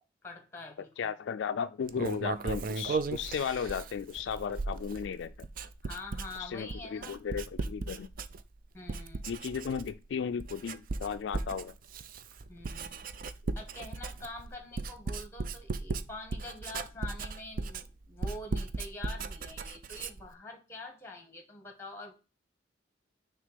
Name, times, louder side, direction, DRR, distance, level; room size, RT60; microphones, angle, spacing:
voice 1, 0.2-1.1 5.8-7.2 8.7-9.2 12.5-13.0 13.5-22.2, left 2 dB, 15° left, 1.7 m, -45 dB
voice 2, 1.0-5.3 6.4-8.1 9.3-11.7, left 7 dB, 65° left, 0.3 m, -35 dB
Writing, 1.9-8.6 8.9-10.1 10.4-20.3, right 3 dB, 50° right, 0.4 m, -37 dB
6.4 x 3.4 x 5.2 m
head